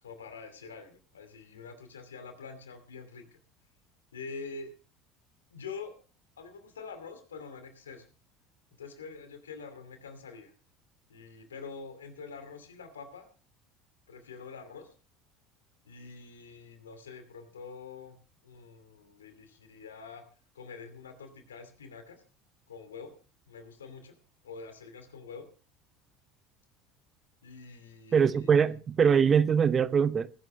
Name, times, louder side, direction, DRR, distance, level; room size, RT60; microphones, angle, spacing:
voice 1, 0.0-3.4 4.1-4.7 5.5-5.9 6.4-8.0 8.8-10.5 11.1-13.3 14.1-14.9 15.8-18.2 18.4-20.2 20.5-22.2 22.7-23.1 23.5-24.2 24.4-25.5 27.4-28.6, left 5 dB, 90° left, 2.4 m, -45 dB
voice 2, 28.1-30.3, right 7 dB, 35° right, 0.8 m, -23 dB
20.0 x 10.5 x 3.2 m
hypercardioid pair, 70°, 0 cm